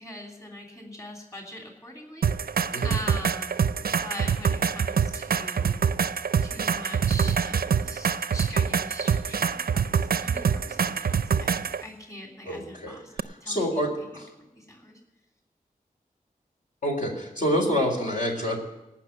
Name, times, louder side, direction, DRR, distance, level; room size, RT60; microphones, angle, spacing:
voice 1, 0.0-2.3 2.8-3.7 4.0-5.8 6.4-13.1 13.4-13.8 14.4-15.0, left 1 dB, 20° left, 0 dB, 3.2 m, -42 dB
sound 1, 2.2-11.8 13.2-13.3, right 6 dB, 85° right, 0.5 m, -25 dB
voice 2, 12.5-14.3 16.8-18.6, equal, 60° left, 0 dB, 3.7 m, -28 dB
18.0 x 6.1 x 9.3 m, 0.98 s
wide cardioid pair, 55°, 15 cm